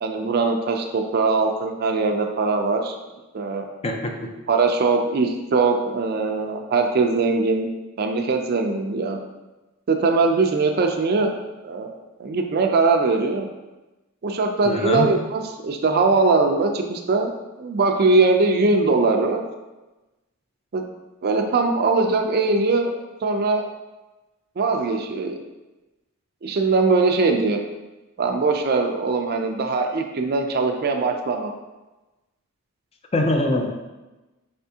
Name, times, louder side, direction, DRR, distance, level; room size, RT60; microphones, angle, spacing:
voice 1, 0.0-3.0 3.3-3.7 4.5-7.7 8.0-9.2 9.9-11.4 11.6-11.9 12.2-13.5 14.2-17.3 17.6-19.4 20.7-20.8 21.2-22.9 23.2-23.7 24.6-25.4 26.4-27.6 28.2-31.5, right 3 dB, 45° right, 4 dB, 0.4 m, -21 dB
voice 2, 3.8-4.3 14.6-15.2 33.1-33.8, left 1 dB, 30° left, 3 dB, 0.4 m, -23 dB
4.9 x 3.4 x 2.7 m, 1.1 s
head